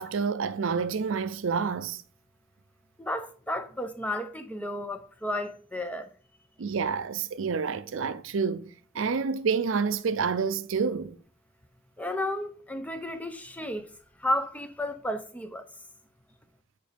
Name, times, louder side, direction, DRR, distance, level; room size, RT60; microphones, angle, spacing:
voice 1, 0.0-2.0 6.6-11.2, right 5 dB, 70° right, 0.5 m, -28 dB
voice 2, 3.0-6.1 12.0-13.9 14.2-15.7, left 1 dB, 5° left, 0.6 m, -32 dB
8.7 x 5.0 x 3.4 m
head